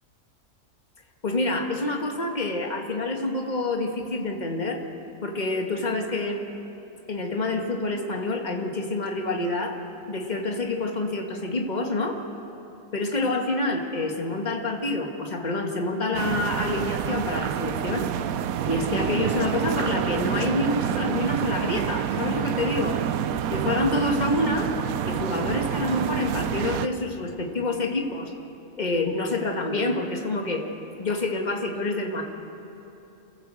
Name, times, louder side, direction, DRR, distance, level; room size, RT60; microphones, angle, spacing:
voice 1, 1.2-4.8 5.2-6.4 7.1-9.8 10.1-12.2 12.9-18.1 18.6-23.0 23.5-24.7 25.1-28.3 28.8-30.6 31.0-32.2, left 2 dB, 30° left, 2 dB, 1.8 m, -27 dB
sound 1, 16.1-26.9, right 9 dB, 70° right, 1.1 m, -27 dB
27.5 x 14.5 x 7.7 m, 3.0 s
omnidirectional pair, 1.6 m